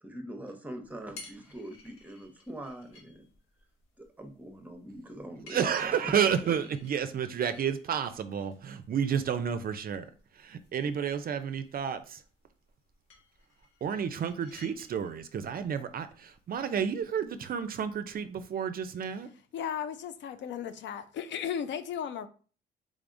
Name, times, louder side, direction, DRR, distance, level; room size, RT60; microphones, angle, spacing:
voice 1, 0.0-3.3 4.0-6.6, right 1 dB, 10° right, 0.8 m, -43 dB
sound 1, 0.8-18.3, left 4 dB, 85° left, 1.1 m, -57 dB
voice 2, 5.5-10.0 10.3-12.2 13.8-19.3, right 7 dB, 50° right, 0.4 m, -31 dB
voice 3, 19.5-22.3, left 8 dB, 65° left, 0.5 m, -35 dB
3.6 x 3.5 x 2.5 m
cardioid pair, 90°, 20 cm